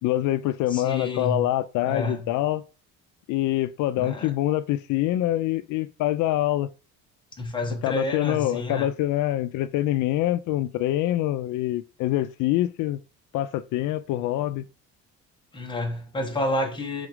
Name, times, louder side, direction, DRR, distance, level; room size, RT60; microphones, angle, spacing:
voice 1, 0.0-2.6 3.3-6.7 7.8-13.0 13.3-14.6, left 14 dB, 80° left, 0.5 m, -25 dB
voice 2, 0.7-1.5 1.8-2.3 4.0-4.3 7.4-8.9 15.5-17.1, left 1 dB, 15° left, 1.3 m, -29 dB
4.9 x 4.0 x 4.9 m
cardioid pair, 145°, 30 cm